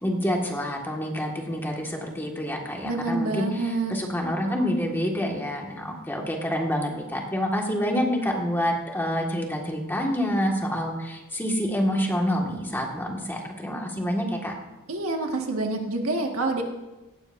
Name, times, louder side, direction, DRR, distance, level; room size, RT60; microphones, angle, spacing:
voice 1, 0.0-14.5, equal, 10° left, 0 dB, 1.8 m, -27 dB
voice 2, 2.8-3.9 14.9-16.6, right 2 dB, 75° right, 2 dB, 1.8 m, -27 dB
17.5 x 15.0 x 2.7 m, 1.1 s
head